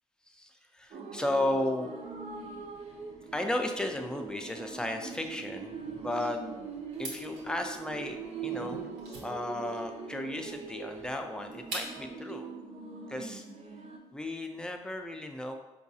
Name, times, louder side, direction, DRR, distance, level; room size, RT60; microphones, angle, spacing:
voice 1, 0.3-1.9 3.3-6.4 7.0-8.9 9.2-12.5 13.1-13.5 14.1-15.6, left 1 dB, 5° left, 4 dB, 0.5 m, -34 dB
sound 1, 0.9-14.0, right 5 dB, 55° right, 0.5 m, -42 dB
sound 2, 2.0-8.9, left 5 dB, 65° left, 0.5 m, -56 dB
sound 3, 6.9-12.2, right 2 dB, 80° right, 0.9 m, -44 dB
4.5 x 2.3 x 2.7 m, 1.1 s
supercardioid pair, 55°, 14 cm